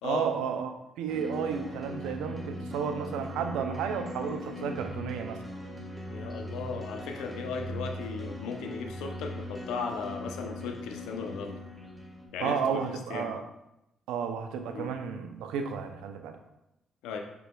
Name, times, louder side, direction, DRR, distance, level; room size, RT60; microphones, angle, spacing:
voice 1, 0.0-0.7 1.0-5.4 12.4-13.4 14.1-16.4, right 7 dB, 75° right, 6 dB, 0.5 m, -32 dB
sound 1, 1.1-12.3, left 1 dB, 5° right, 1.3 m, -40 dB
voice 2, 6.1-11.6 12.3-13.3 14.7-14.9 17.0-17.2, left 5 dB, 80° left, 4 dB, 0.5 m, -36 dB
4.9 x 4.7 x 2.3 m, 0.85 s
hypercardioid pair, 55°, 0 cm